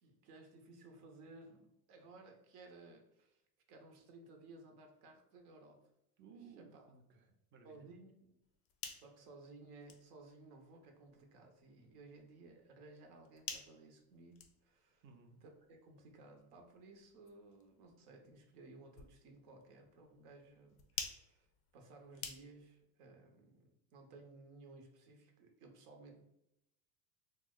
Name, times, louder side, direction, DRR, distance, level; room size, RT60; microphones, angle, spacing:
voice 1, 0.0-3.4 3.7-5.8 6.4-6.9 7.6-8.4 8.9-15.0 15.4-21.5 21.7-26.2, right 3 dB, 70° right, 3 dB, 0.8 m, -58 dB
voice 2, 6.2-7.9 15.0-15.4, right 5 dB, 25° right, 3 dB, 0.5 m, -59 dB
sound 1, 8.4-22.8, left 6 dB, 35° left, 0.4 m, -53 dB
2.9 x 2.1 x 3.6 m, 0.83 s
supercardioid pair, 115°, 46 cm